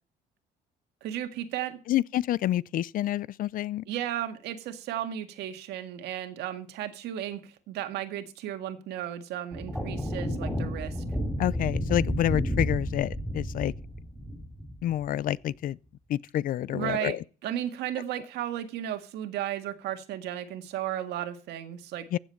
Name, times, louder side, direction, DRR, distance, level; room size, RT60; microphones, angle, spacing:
voice 1, 1.0-1.8 3.9-11.0 16.7-17.2 17.4-22.0, right 11 dB, 80° right, 1.8 m, -34 dB
voice 2, 1.9-3.8 11.4-13.7 14.8-15.8 16.1-17.2 22.1-22.2, left 12 dB, 55° left, 0.5 m, -28 dB
sound 1, 9.5-15.1, equal, 5° left, 3.2 m, -31 dB
15.0 x 7.2 x 4.4 m
cardioid pair, 110°, 17 cm